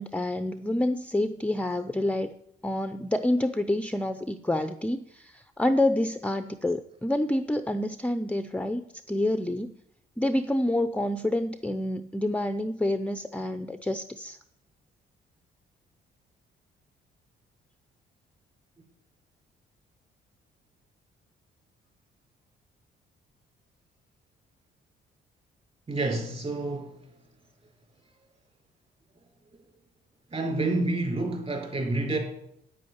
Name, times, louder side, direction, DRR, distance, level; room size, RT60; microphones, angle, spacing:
voice 1, 0.0-2.3 2.6-9.7 10.2-14.4, left 1 dB, 5° left, 10 dB, 0.6 m, -28 dB
voice 2, 25.9-27.0 30.3-32.2, right 2 dB, 30° right, 3 dB, 4.5 m, -28 dB
9.2 x 8.7 x 9.5 m, 0.76 s
cardioid pair, 90°, 20 cm